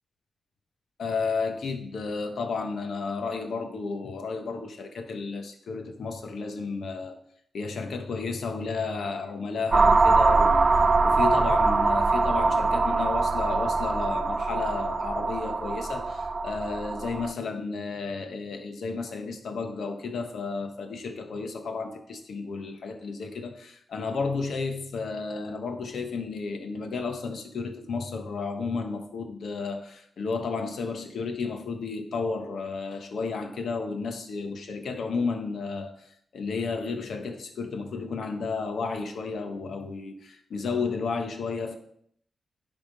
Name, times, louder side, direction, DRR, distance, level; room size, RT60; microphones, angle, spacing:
voice 1, 1.0-7.2 7.5-10.8 11.0-36.0 36.3-41.8, left 4 dB, 75° left, 1.1 m, -32 dB
sound 1, 9.7-17.3, right 3 dB, 40° right, 0.4 m, -23 dB
10.5 x 3.7 x 5.2 m
cardioid pair, 90°, 0 cm